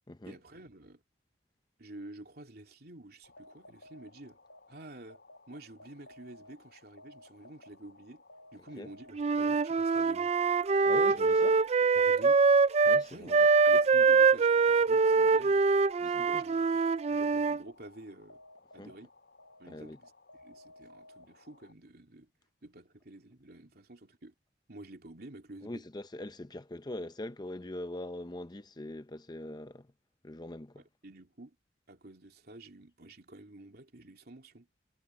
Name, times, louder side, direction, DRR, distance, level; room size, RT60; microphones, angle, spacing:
voice 1, 0.2-1.0 1.8-4.4 4.7-8.2 8.5-10.3 11.1-11.2 11.9-12.4 13.1-15.6 16.0-16.8 17.1-18.4 18.7-19.1 19.6-20.1 20.4-22.3 22.6-24.3 24.7-25.8 30.8-31.6 31.9-34.7, right 1 dB, 60° right, 3.0 m, -50 dB
sound 1, 3.2-21.7, left 2 dB, 90° left, 4.3 m, -57 dB
Wind instrument woodwind instrument, 9.1-13.0 13.3-17.6, right 4 dB, 40° right, 0.4 m, -24 dB
voice 2, 10.8-11.6 12.8-13.5 16.3-16.4 18.8-18.9 19.7-20.0 25.6-29.9 30.2-30.8, left 1 dB, 25° left, 0.7 m, -42 dB
head